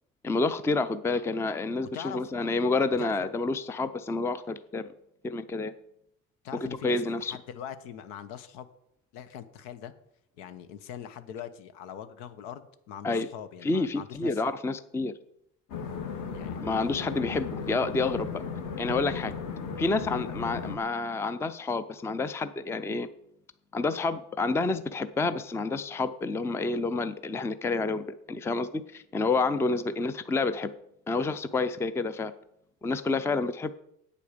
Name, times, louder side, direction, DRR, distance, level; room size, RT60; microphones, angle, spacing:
voice 1, 0.2-4.9 5.2-5.7 6.8-7.4 13.0-13.3 13.6-15.1 16.6-18.4 18.8-19.3 19.8-23.1 23.7-30.7 31.1-32.3 32.8-33.7, left 3 dB, 5° left, 13 dB, 0.4 m, -29 dB
voice 2, 1.9-2.2 3.0-3.3 6.4-8.7 9.1-9.9 10.4-14.4 16.3-17.2, left 9 dB, 85° left, 12 dB, 1.2 m, -42 dB
sound 1, 15.7-20.8, left 6 dB, 55° left, 1.9 m, -36 dB
8.7 x 8.3 x 6.7 m, 0.76 s
cardioid pair, 120°, 38 cm